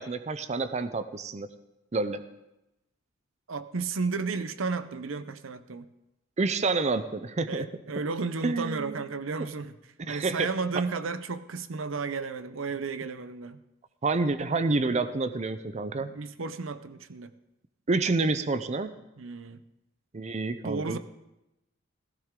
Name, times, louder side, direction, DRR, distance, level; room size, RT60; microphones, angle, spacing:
voice 1, 0.0-1.5 1.9-2.2 6.4-7.7 8.4-9.0 9.4-9.5 10.0-10.5 14.0-16.1 17.9-18.9 20.1-21.0, right 3 dB, 35° right, 12 dB, 0.6 m, -28 dB
voice 2, 3.5-5.9 7.4-9.8 10.1-13.6 16.0-17.3 19.2-19.6 20.6-21.0, right 4 dB, 80° right, 12 dB, 0.7 m, -33 dB
15.5 x 14.0 x 3.7 m, 0.93 s
head